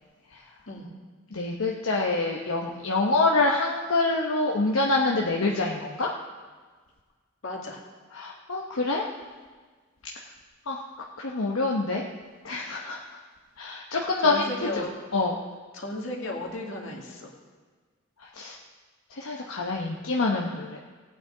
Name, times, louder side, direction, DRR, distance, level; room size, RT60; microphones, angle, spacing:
voice 1, 1.3-6.1 8.1-9.0 10.7-10.8 11.2-12.0 12.4-13.0 13.6-14.4 14.8-14.9 15.1-15.3 18.3-18.6 19.1-20.8, left 3 dB, 85° left, -1 dB, 1.0 m, -26 dB
voice 2, 7.4-7.8 14.2-14.9 15.7-17.3, left 2 dB, 65° left, 0 dB, 2.1 m, -34 dB
18.0 x 8.9 x 3.9 m, 1.5 s
head